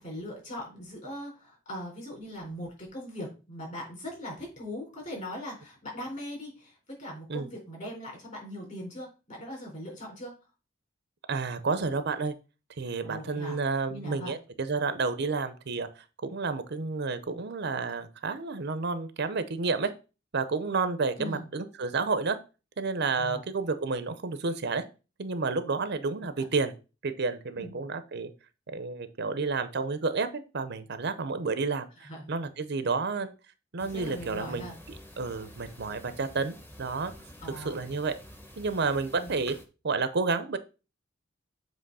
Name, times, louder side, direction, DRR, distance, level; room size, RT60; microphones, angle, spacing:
voice 1, 0.0-10.3 13.0-13.6 13.9-14.3 21.2-21.5 23.2-23.4 27.6-27.8 32.0-32.3 33.8-34.7 37.4-37.8 39.1-39.3, equal, 40° left, -2 dB, 4.1 m, -40 dB
voice 2, 11.3-12.3 12.8-15.9 16.2-19.9 20.3-22.4 22.8-24.8 25.2-26.7 27.0-28.3 28.7-33.3 33.7-37.1 37.5-38.2 38.6-39.5 39.8-40.6, right 4 dB, 60° right, 12 dB, 0.7 m, -30 dB
sound 1, 33.8-39.6, equal, 10° left, 1.0 m, -49 dB
7.6 x 3.1 x 5.5 m, 0.31 s
head